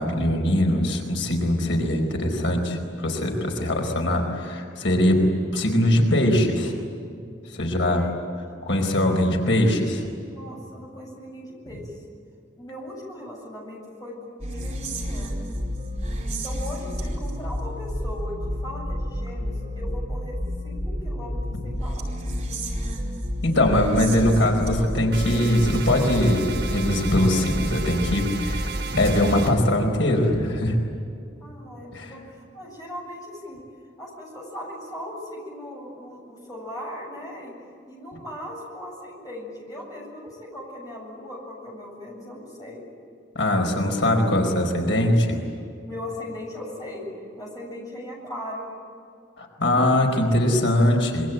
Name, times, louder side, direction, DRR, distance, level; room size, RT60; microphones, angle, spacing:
voice 1, 0.0-5.3 5.5-6.7 7.5-8.1 8.6-10.0 23.4-28.7 29.0-30.8 31.9-32.1 43.3-45.4 49.4-51.3, left 1 dB, 85° left, 2 dB, 4.7 m, -21 dB
voice 2, 7.9-8.8 10.2-11.9 12.5-15.6 16.3-20.4 20.6-22.1 31.4-32.2 32.5-33.6 34.0-37.5 37.9-42.8 45.8-47.1 47.4-48.7, left 1 dB, 20° left, -2 dB, 7.9 m, -38 dB
sound 1, 14.4-29.1, equal, 35° right, 4.8 m, -30 dB
sound 2, 25.1-29.5, right 6 dB, 70° right, 5.3 m, -35 dB
27.0 x 23.5 x 9.2 m, 2.4 s
head